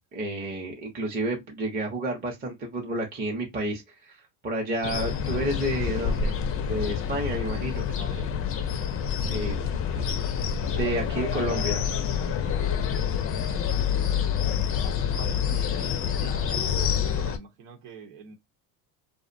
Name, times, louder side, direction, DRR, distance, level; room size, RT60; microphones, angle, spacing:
voice 1, 0.0-6.4 6.7-7.9 9.2-9.6 10.7-11.8, right 1 dB, 20° right, 0.6 m, -30 dB
sound 1, 4.8-17.4, left 8 dB, 35° left, 0.4 m, -27 dB
voice 2, 7.8-8.3 9.4-9.6 9.9-10.1 13.3-13.7 15.1-18.4, right 6 dB, 80° right, 0.9 m, -44 dB
2.5 x 2.1 x 2.5 m
supercardioid pair, 110°, 44 cm